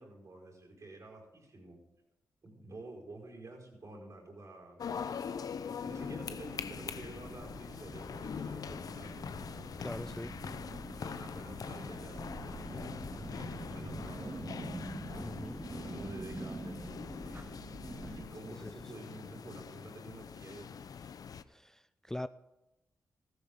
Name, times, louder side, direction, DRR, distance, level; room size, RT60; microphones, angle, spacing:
voice 1, 0.0-1.8 2.4-4.8 5.2-5.4 5.8-9.3 11.0-14.8 15.1-16.8 18.1-20.8, right 2 dB, 55° right, 4.9 m, -50 dB
sound 1, 4.8-21.4, left 7 dB, 65° left, 0.5 m, -43 dB
sound 2, 5.9-18.2, right 2 dB, 35° right, 2.5 m, -45 dB
voice 2, 9.8-10.3 15.2-15.7 18.0-18.1 18.6-18.7 21.5-22.3, left 1 dB, 5° left, 0.4 m, -42 dB
14.5 x 13.5 x 3.7 m
supercardioid pair, 50°, 7 cm